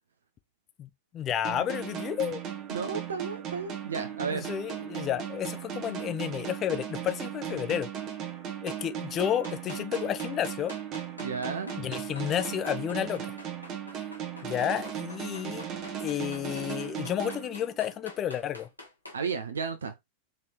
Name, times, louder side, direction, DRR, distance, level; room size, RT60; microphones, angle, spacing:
voice 1, 0.8-2.4 4.3-7.9 8.6-10.7 11.8-13.3 14.4-15.7 16.0-18.7, left 10 dB, 30° left, 0.5 m, -31 dB
sound 1, 1.4-18.0, right 9 dB, 35° right, 1.0 m, -37 dB
voice 2, 2.7-4.5 11.2-11.7 19.1-19.9, right 5 dB, 70° right, 0.5 m, -33 dB
sound 2, 5.8-6.1 9.2-19.2, left 2 dB, 85° left, 1.2 m, -47 dB
4.1 x 3.2 x 2.9 m
figure-of-eight pair, 90°, 0 cm